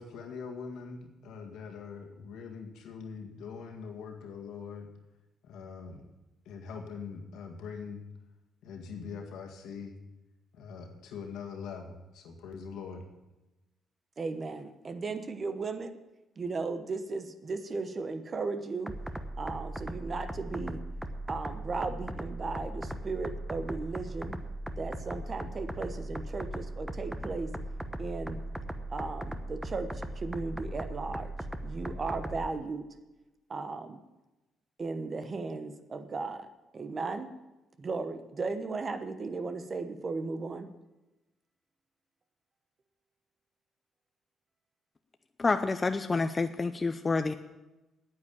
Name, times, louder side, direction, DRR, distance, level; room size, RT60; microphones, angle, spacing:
voice 1, 0.0-4.9 5.4-6.0 6.5-8.0 8.6-9.9 10.5-13.0, left 5 dB, 85° left, 3 dB, 1.9 m, -42 dB
voice 2, 14.2-15.9 16.4-18.9 19.4-20.8 21.3-24.4 24.8-27.5 28.0-28.4 28.9-31.3 31.6-32.9 33.5-34.0 34.8-36.5 36.7-37.3 37.8-40.7, right 4 dB, 40° right, 10 dB, 1.1 m, -36 dB
sound 1, 18.9-32.5, right 1 dB, 10° right, 1.0 m, -38 dB
voice 3, 45.4-47.3, left 3 dB, 25° left, 9 dB, 0.6 m, -28 dB
9.6 x 8.7 x 8.5 m, 1.0 s
cardioid pair, 90°, 0 cm